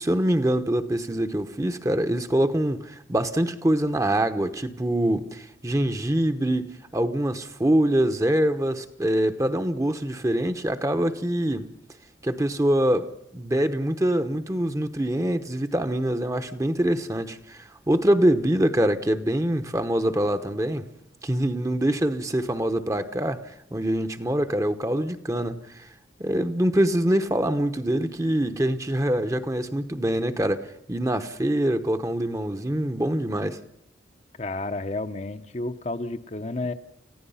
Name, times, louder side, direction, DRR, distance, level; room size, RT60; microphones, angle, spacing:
voice 1, 0.0-11.7 12.2-20.9 21.2-25.9 26.2-33.6, right 1 dB, 15° right, 1.0 m, -24 dB
voice 2, 34.4-36.7, left 2 dB, 35° left, 0.9 m, -31 dB
29.5 x 15.5 x 5.6 m
head